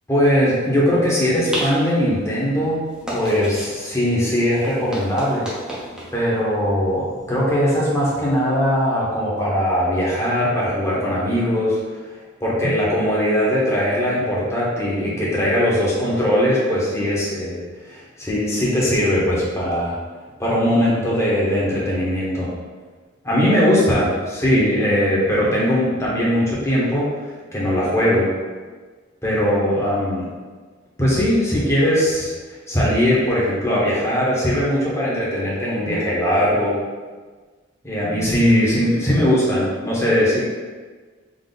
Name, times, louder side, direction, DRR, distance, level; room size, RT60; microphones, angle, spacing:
voice 1, 0.1-2.9 3.1-5.5 6.1-11.8 12.4-20.0 20.4-22.5 23.2-27.2 27.5-28.3 29.2-30.3 31.0-36.8 37.8-40.4, equal, 15° left, -7 dB, 1.2 m, -20 dB
sound 1, 0.8-8.3, equal, 5° right, 0.9 m, -35 dB
3.8 x 2.9 x 4.1 m, 1.4 s
head